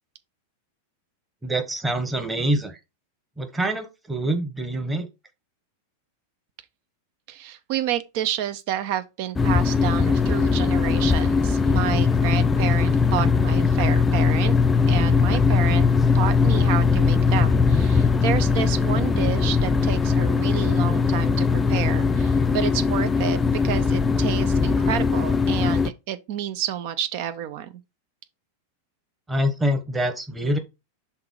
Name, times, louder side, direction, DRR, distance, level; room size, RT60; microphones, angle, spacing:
voice 1, 1.4-2.8 3.4-5.1 29.3-30.6, right 1 dB, 10° right, 1.2 m, -25 dB
voice 2, 7.3-14.5 14.9-15.9 16.1-23.4 23.6-27.7, right 10 dB, 45° right, 0.7 m, -29 dB
sound 1, 9.4-25.9, left 5 dB, 15° left, 0.5 m, -20 dB
5.9 x 3.9 x 4.6 m
figure-of-eight pair, 90°, 0 cm